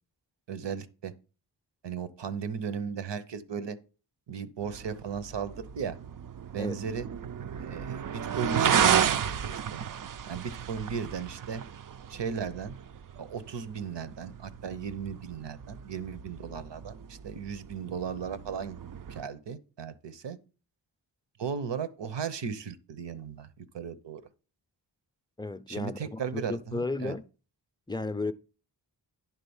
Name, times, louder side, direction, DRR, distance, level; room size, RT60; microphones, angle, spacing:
voice 1, 0.5-1.1 1.8-3.8 4.3-6.0 6.5-7.1 7.6-9.8 10.3-11.6 12.1-12.7 13.1-18.8 19.1-20.4 21.4-24.2 25.7-27.1, right 6 dB, 70° right, 0.9 m, -36 dB
sound 1, 4.6-19.2, right 8 dB, 50° right, 0.4 m, -33 dB
voice 2, 25.4-27.2 27.9-28.3, left 3 dB, 10° left, 0.5 m, -34 dB
10.5 x 3.7 x 7.0 m
wide cardioid pair, 95°, 44 cm